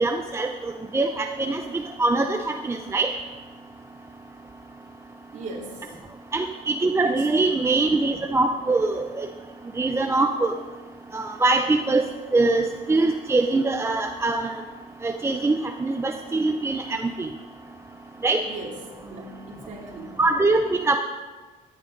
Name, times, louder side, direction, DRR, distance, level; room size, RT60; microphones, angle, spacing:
voice 1, 0.0-0.5 0.9-3.1 6.3-9.3 9.8-10.5 11.1-12.0 12.3-14.5 15.0-17.3 18.2-18.4 20.2-21.0, right 3 dB, 15° right, 5 dB, 0.6 m, -23 dB
voice 2, 5.3-5.9 6.9-7.5 18.4-18.8 19.0-20.2, right 2 dB, 50° right, 0 dB, 2.8 m, -38 dB
14.5 x 10.5 x 3.9 m, 1.3 s
cardioid pair, 110°, 17 cm